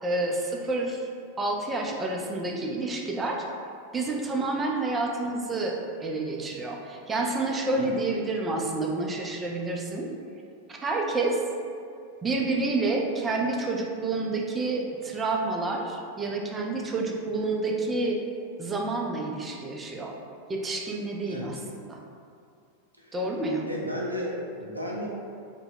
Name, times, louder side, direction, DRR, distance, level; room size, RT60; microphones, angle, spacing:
voice 1, 0.0-1.0 1.4-3.5 3.9-10.1 10.7-11.4 12.2-18.2 18.6-20.1 20.5-22.0 23.1-23.7, right 2 dB, 15° right, 0 dB, 0.4 m, -29 dB
voice 2, 23.7-25.1, equal, 85° right, -3 dB, 0.4 m, -33 dB
2.7 x 2.1 x 3.7 m, 2.4 s
figure-of-eight pair, 90°, 0 cm